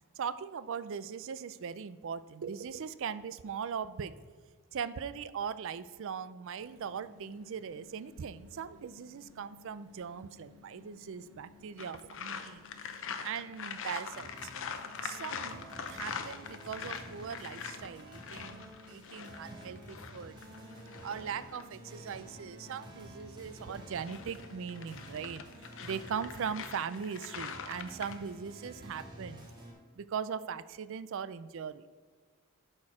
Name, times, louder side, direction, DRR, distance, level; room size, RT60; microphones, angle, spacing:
voice 1, 0.2-4.2 4.7-12.6 13.2-14.5 15.0-20.4 21.0-25.5 25.8-29.5 30.0-31.9, right 7 dB, 60° right, 15 dB, 0.4 m, -40 dB
sound 1, 6.6-25.9, left 4 dB, 80° right, 0.9 m, -59 dB
sound 2, 11.8-21.7 23.8-28.2, left 6 dB, 60° left, 0.7 m, -43 dB
sound 3, 14.1-29.7, right 1 dB, 20° right, 1.8 m, -50 dB
11.5 x 4.4 x 4.8 m, 1.5 s
head